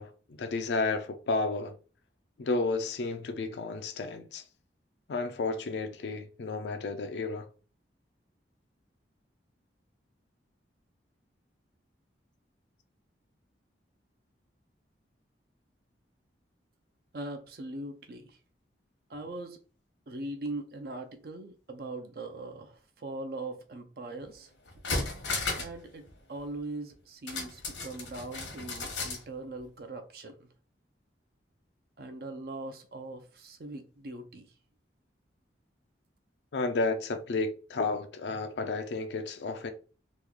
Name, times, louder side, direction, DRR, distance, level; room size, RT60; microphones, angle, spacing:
voice 1, 0.0-1.8 2.4-4.4 5.1-7.5 36.5-39.7, left 3 dB, 70° left, 0.4 m, -32 dB
voice 2, 17.1-18.4 19.1-19.6 20.1-24.5 25.6-26.0 26.3-30.5 32.0-34.5, right 2 dB, 55° right, 0.5 m, -40 dB
sound 1, 24.2-24.3 24.7-25.8 26.1-26.2 27.3-29.2 29.6-29.7, left 3 dB, 85° left, 1.0 m, -34 dB
3.1 x 2.3 x 3.6 m
head